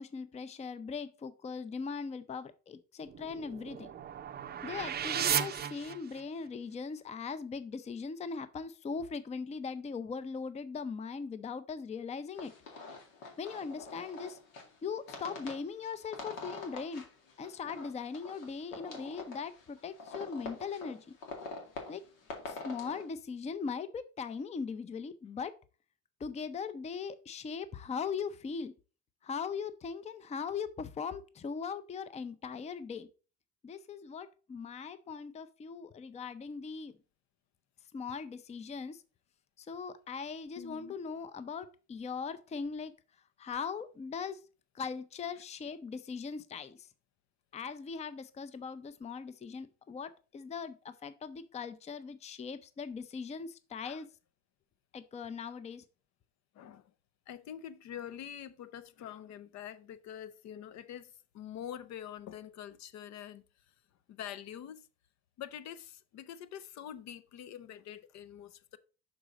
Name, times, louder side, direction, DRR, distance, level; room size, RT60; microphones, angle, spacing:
voice 1, 0.0-3.9 4.6-12.5 13.4-14.4 14.8-17.0 17.4-21.1 21.9-22.0 22.5-25.5 26.2-28.7 29.2-33.1 33.6-37.0 37.9-39.0 39.6-42.9 43.4-44.4 44.7-46.9 47.5-54.1 54.9-55.8, left 5 dB, 20° left, 0.5 m, -40 dB
sound 1, 3.1-6.5, right 9 dB, 30° right, 0.5 m, -35 dB
sound 2, 12.3-23.1, left 3 dB, 85° left, 2.2 m, -46 dB
voice 2, 40.6-40.9 53.8-54.0 56.5-56.9 57.3-63.4 64.1-64.9 65.4-68.8, left 10 dB, 60° left, 0.7 m, -45 dB
6.2 x 4.0 x 5.0 m
cardioid pair, 105°, 31 cm